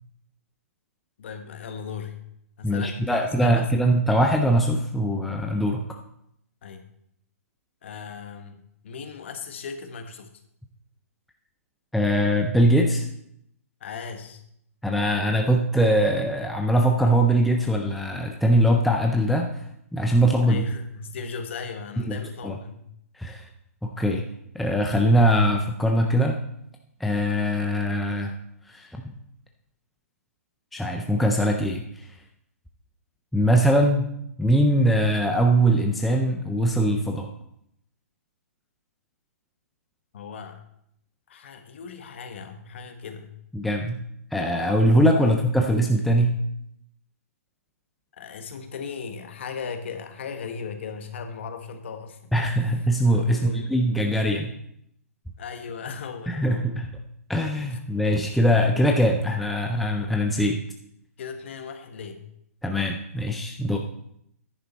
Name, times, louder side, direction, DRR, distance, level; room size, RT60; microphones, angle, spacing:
voice 1, 1.2-2.2 2.6-3.7 6.6-6.9 7.8-10.3 13.8-14.4 20.5-22.8 40.1-40.6 41.3-43.3 45.2-45.3 48.2-52.3 53.3-53.8 55.4-56.7 61.2-62.3, left 5 dB, 50° left, 7 dB, 1.3 m, -37 dB
voice 2, 2.6-5.8 11.9-13.1 14.8-19.5 19.9-20.6 22.1-22.2 22.4-22.6 23.2-23.4 23.8-24.2 24.5-26.4 27.0-28.3 28.7-28.9 30.7-31.8 33.3-34.1 34.4-37.3 43.5-44.0 44.3-46.4 52.3-54.5 56.3-56.9 57.3-60.6 62.6-63.8, equal, ahead, 1 dB, 0.4 m, -22 dB
10.0 x 9.5 x 4.1 m, 0.75 s
hypercardioid pair, 165°, 8 cm